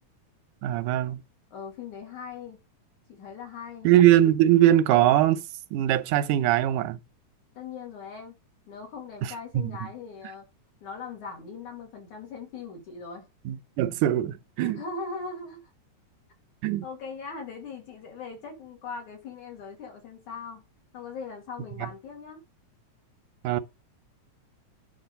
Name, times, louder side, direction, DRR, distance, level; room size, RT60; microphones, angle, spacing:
voice 1, 0.6-1.2 3.8-5.4 5.7-7.0 9.6-9.7 13.5-14.8 16.6-16.9 21.8-21.9 23.4-23.6, right 13 dB, 90° right, 2.3 m, -21 dB
voice 2, 1.5-2.6 3.1-3.9 7.6-8.3 8.7-10.5 10.8-13.3 14.6-15.6 16.8-20.6 20.9-22.4, left 5 dB, 75° left, 4.0 m, -40 dB
9.6 x 5.0 x 5.3 m
omnidirectional pair, 3.5 m